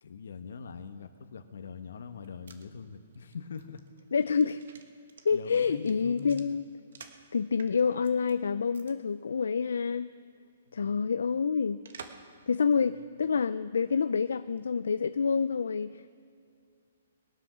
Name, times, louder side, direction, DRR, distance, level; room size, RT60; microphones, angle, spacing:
voice 1, 0.0-3.8 5.3-6.6 10.7-11.3 12.8-13.1, left 6 dB, 75° left, 9 dB, 1.1 m, -43 dB
sound 1, 2.0-7.3 7.6-8.3 8.7-8.9 9.2-9.3 11.8-12.3 12.7-12.8, right 6 dB, 70° right, 1.3 m, -51 dB
voice 2, 4.1-4.6 5.2-6.6 7.3-10.1 10.7-11.8 12.5-16.1, left 5 dB, 90° left, 13 dB, 0.4 m, -28 dB
22.0 x 8.1 x 6.2 m, 2.2 s
hypercardioid pair, 165°, 0 cm